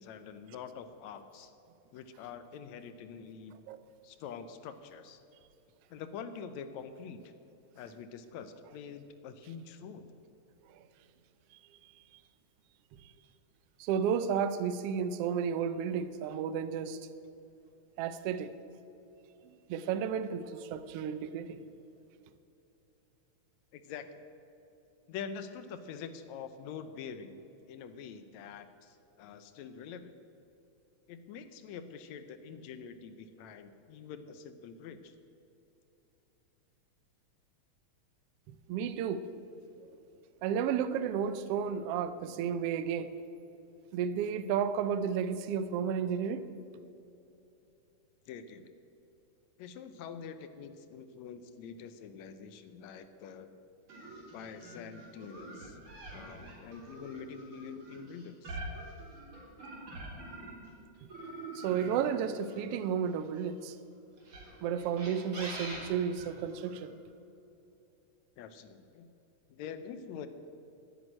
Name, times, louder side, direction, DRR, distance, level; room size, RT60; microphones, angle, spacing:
voice 1, 0.0-1.5 1.9-3.6 4.0-5.2 5.9-7.3 7.8-10.1 23.7-24.1 25.1-27.4 27.7-30.1 31.1-35.1 48.3-48.6 49.6-53.5 54.3-55.8 56.1-58.6 68.4-69.1 69.5-70.3, left 6 dB, 75° left, 10 dB, 2.0 m, -45 dB
voice 2, 13.8-17.0 18.0-18.5 19.4-21.6 38.5-39.2 40.4-43.1 43.9-46.5 61.5-63.8 64.6-66.9, right 7 dB, 80° right, 11 dB, 1.3 m, -32 dB
sound 1, 53.9-60.7 61.1-63.5 64.2-66.8, right 2 dB, 45° right, 4.0 m, -45 dB
10.5 x 9.3 x 9.8 m, 2.9 s
omnidirectional pair, 3.3 m